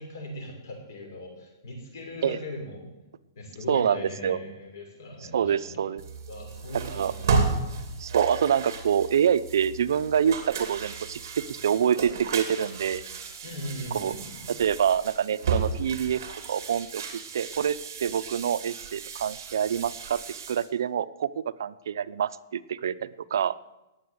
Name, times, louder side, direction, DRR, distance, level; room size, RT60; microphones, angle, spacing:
voice 1, 0.0-2.9 3.4-5.8 6.3-7.6 13.4-14.5, left 1 dB, 55° left, 2 dB, 5.8 m, -39 dB
voice 2, 3.7-4.4 5.3-6.0 6.9-7.1 8.0-13.0 13.9-14.1 14.5-16.2 16.5-23.6, right 8 dB, 65° right, 15 dB, 0.6 m, -26 dB
sound 1, 6.0-20.7, right 5 dB, 45° right, 2.7 m, -33 dB
19.0 x 7.7 x 8.0 m, 0.99 s
hypercardioid pair, 180°, 2 cm